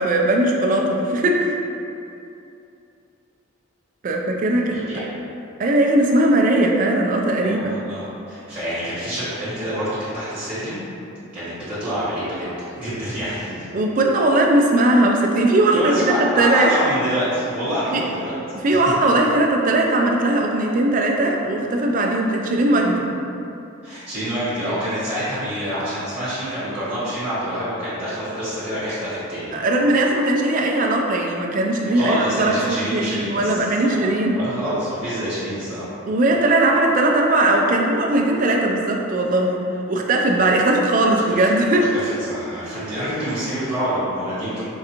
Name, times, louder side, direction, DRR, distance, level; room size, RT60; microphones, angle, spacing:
voice 1, 0.0-1.5 4.0-4.8 5.6-7.7 13.7-16.7 17.9-18.0 18.6-23.1 29.5-34.4 36.1-39.6 39.9-41.9, right 1 dB, 40° right, 1 dB, 0.3 m, -19 dB
voice 2, 7.4-10.8 11.3-13.6 15.7-18.3 23.8-29.6 31.8-35.9 41.1-44.6, equal, 5° right, -13 dB, 1.1 m, -27 dB
4.5 x 2.5 x 2.8 m, 2.7 s
head